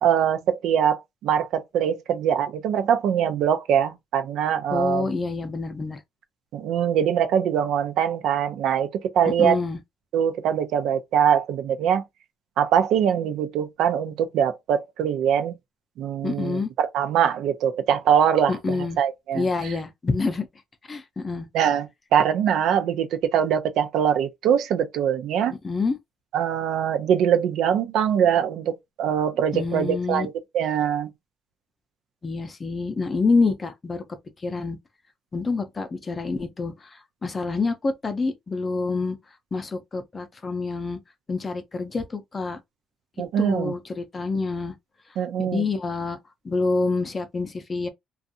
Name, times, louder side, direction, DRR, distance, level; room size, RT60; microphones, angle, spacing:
voice 1, 0.0-5.1 6.5-9.6 10.1-12.0 12.6-15.6 16.0-19.7 21.5-25.5 26.3-31.1 43.2-43.7 45.2-45.7, right 8 dB, 70° right, 0.5 m, -23 dB
voice 2, 4.7-6.0 9.4-9.8 16.2-16.7 18.5-19.0 19.3-20.5 20.9-21.5 25.5-25.9 29.5-30.3 32.2-34.0 34.4-34.8 35.3-39.2 39.5-41.0 41.3-42.6 43.4-44.7 45.4-46.2 46.4-47.9, left 3 dB, 25° left, 0.5 m, -27 dB
2.6 x 2.3 x 2.6 m
cardioid pair, 140°, 0 cm